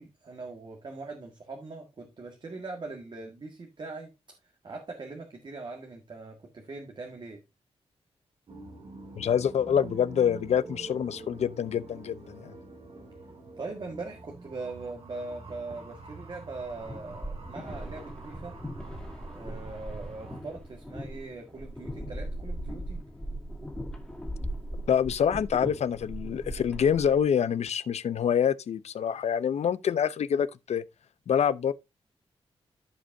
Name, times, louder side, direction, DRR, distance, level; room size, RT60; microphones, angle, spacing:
voice 1, 0.0-4.4 4.6-7.4 13.6-18.6 19.2-23.0, right 3 dB, 45° right, 1.7 m, -41 dB
sound 1, 8.5-20.4, right 3 dB, 60° right, 2.5 m, -46 dB
voice 2, 9.2-12.5 24.9-30.8 31.3-31.7, left 8 dB, 85° left, 0.7 m, -26 dB
sound 2, 16.7-27.3, equal, 5° left, 2.4 m, -39 dB
15.0 x 5.2 x 2.7 m
wide cardioid pair, 135°, 11 cm